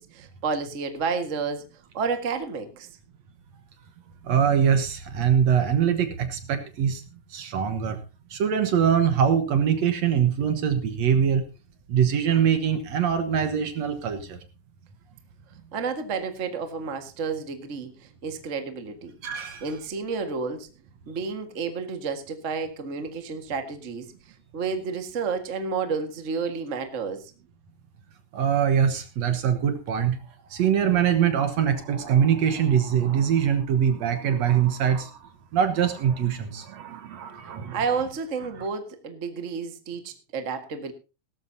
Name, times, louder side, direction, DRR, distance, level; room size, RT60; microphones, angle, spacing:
voice 1, 0.0-1.6 1.9-2.9 15.7-19.1 19.6-20.7 21.1-24.1 24.5-27.3 37.7-40.9, right 5 dB, 30° right, 6 dB, 1.4 m, -30 dB
voice 2, 4.3-7.0 7.3-8.0 8.3-11.4 11.9-14.4 19.2-19.7 28.3-30.2 30.5-35.1 35.5-37.8, right 8 dB, 65° right, 9 dB, 2.3 m, -23 dB
17.5 x 14.0 x 2.8 m, 0.31 s
omnidirectional pair, 3.6 m